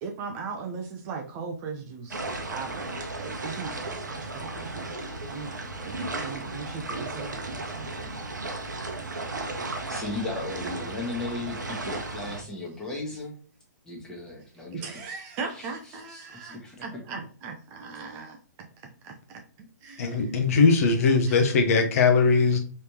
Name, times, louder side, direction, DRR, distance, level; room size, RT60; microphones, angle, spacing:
voice 1, 0.0-2.9 3.2-8.3 14.7-18.4 19.0-19.1 19.8-20.3 21.3-21.4, right 5 dB, 25° right, 3 dB, 0.5 m, -38 dB
sound 1, 2.1-12.4, right 2 dB, 85° right, 0.7 m, -35 dB
voice 2, 9.9-13.3 13.8-15.2 15.6-15.7 15.9-16.8 17.1-17.2, left 2 dB, 5° left, -4 dB, 1.2 m, -36 dB
voice 3, 20.0-22.6, left 4 dB, 50° left, 4 dB, 0.7 m, -20 dB
3.2 x 3.1 x 2.8 m, 0.42 s
hypercardioid pair, 130°, 10 cm